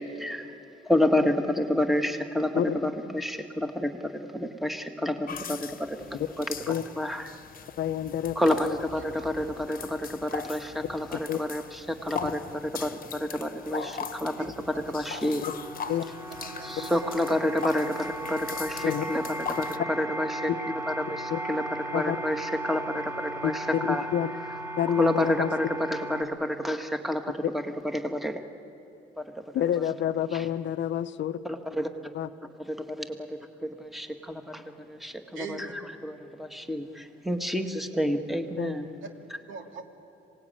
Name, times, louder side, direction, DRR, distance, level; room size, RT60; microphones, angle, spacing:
voice 1, 0.2-0.5 0.9-7.3 8.4-15.5 16.0-16.1 16.6-28.4 29.2-29.9 30.3-30.5 31.4-32.1 32.6-38.9 39.3-39.4, left 1 dB, ahead, 5 dB, 1.8 m, -30 dB
sound 1, 5.3-19.8, left 6 dB, 45° left, 1.1 m, -40 dB
voice 2, 7.8-8.4 11.1-11.4 12.2-12.3 15.9-16.0 18.8-19.0 21.3-21.4 21.9-22.2 23.4-23.5 23.8-24.3 24.8-25.5 29.5-31.4 32.1-32.3 38.6-38.8, left 10 dB, 65° left, 13 dB, 0.8 m, -28 dB
voice 3, 8.9-9.3 14.4-14.5 15.8-16.0 16.3-17.1 35.3-35.7 39.0-39.1 39.5-39.8, right 5 dB, 80° right, 3 dB, 2.6 m, -41 dB
sound 2, 14.2-26.2, right 1 dB, 15° right, 2.9 m, -37 dB
26.5 x 18.5 x 9.0 m, 3.0 s
cardioid pair, 90°, 20 cm